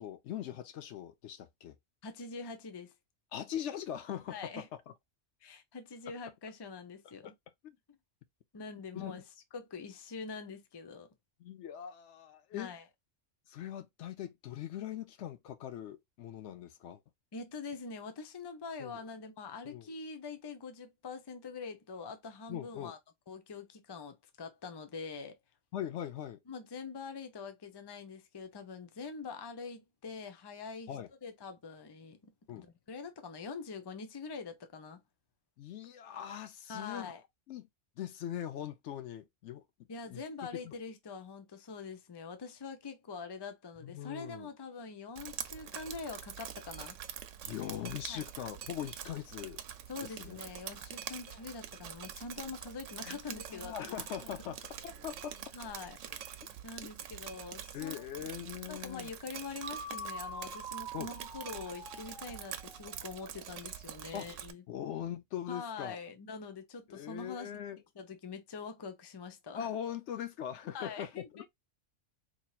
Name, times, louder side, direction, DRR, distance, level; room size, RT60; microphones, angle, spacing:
voice 1, 0.0-1.8 3.3-4.6 7.2-7.3 7.6-7.8 8.9-9.2 11.4-12.7 13.5-17.0 18.8-18.9 19.6-19.9 22.5-22.9 25.7-26.4 30.9-31.1 32.5-32.7 35.6-37.1 37.5-37.7 38.0-39.6 40.1-40.2 40.5-40.7 43.8-44.5 47.4-49.6 50.0-50.4 53.0-55.4 57.7-59.1 60.9-61.1 64.1-64.4 64.7-66.0 66.9-67.8 69.5-71.5, left 10 dB, 70° left, 0.9 m, -41 dB
voice 2, 2.0-2.9 4.3-4.7 5.4-7.3 8.5-9.2 9.5-11.1 12.5-12.8 17.3-23.0 23.3-25.4 26.5-32.2 32.6-35.0 36.7-37.2 39.9-47.0 48.1-48.2 49.9-53.8 55.5-58.0 58.7-64.6 65.5-67.6 68.0-69.7 70.7-71.5, left 4 dB, 30° left, 0.5 m, -44 dB
Drip, 45.2-64.5, right 10 dB, 80° right, 0.9 m, -45 dB
Male speech man speaking, 49.2-52.2 53.8-56.8, left 4 dB, 45° left, 1.4 m, -64 dB
sound 1, 59.6-63.5, right 1 dB, 25° right, 0.7 m, -45 dB
4.3 x 3.1 x 2.3 m
omnidirectional pair, 1.3 m